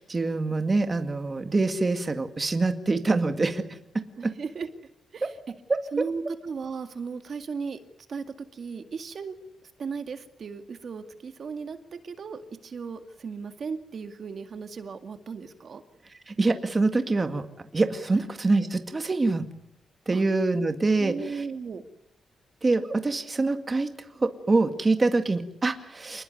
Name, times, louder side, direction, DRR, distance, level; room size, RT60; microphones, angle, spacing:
voice 1, 0.0-3.8 4.2-4.3 16.3-19.5 20.1-21.5 22.6-26.2, right 3 dB, 20° right, 7 dB, 2.0 m, -25 dB
voice 2, 4.2-4.7 5.1-5.3 5.9-7.8 8.1-8.2 8.5-9.4 9.8-11.8 12.0-15.8 18.1-18.2 20.1-20.2 21.0-21.8, right 5 dB, 45° right, 8 dB, 2.1 m, -36 dB
28.5 x 20.5 x 9.4 m, 0.77 s
wide cardioid pair, 165°, 0 cm